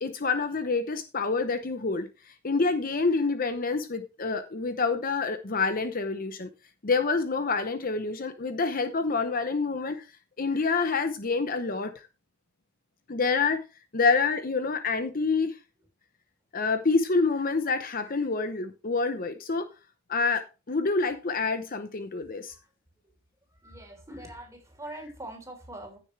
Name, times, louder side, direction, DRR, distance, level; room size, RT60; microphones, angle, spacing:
voice 1, 0.0-2.1 2.4-6.5 6.8-10.0 10.4-11.9 13.1-13.6 13.9-15.6 16.5-19.7 20.1-22.5, left 4 dB, 45° left, 0.8 m, -27 dB
voice 2, 23.5-26.0, right 1 dB, 15° right, 3.6 m, -43 dB
15.0 x 6.8 x 3.3 m
head